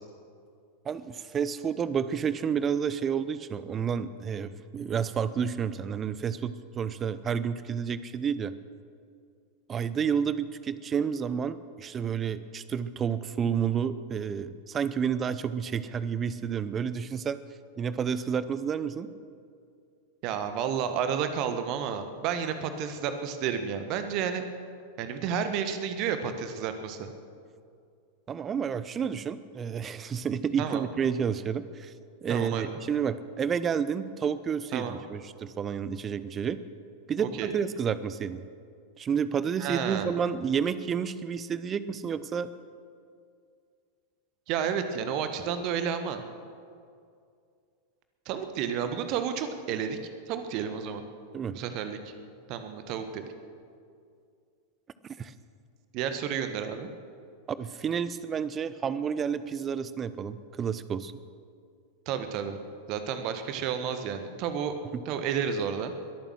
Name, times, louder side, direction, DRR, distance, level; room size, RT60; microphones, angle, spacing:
voice 1, 0.8-8.5 9.7-17.4 17.8-19.1 28.3-31.9 32.2-36.6 37.1-38.4 39.0-42.5 51.3-51.6 55.2-55.3 57.6-61.1 64.9-65.0, right 7 dB, 25° right, 15 dB, 0.6 m, -30 dB
voice 2, 20.2-24.4 25.0-27.1 30.6-30.9 32.3-32.8 34.7-35.0 37.2-37.5 39.6-40.1 44.5-46.2 48.2-50.0 50.3-51.0 51.5-52.1 52.5-53.2 55.9-56.9 62.1-62.6 62.9-64.8 65.0-65.9, right 7 dB, 40° right, 8 dB, 1.3 m, -31 dB
22.5 x 9.0 x 6.4 m, 2.3 s
figure-of-eight pair, 90°, 0 cm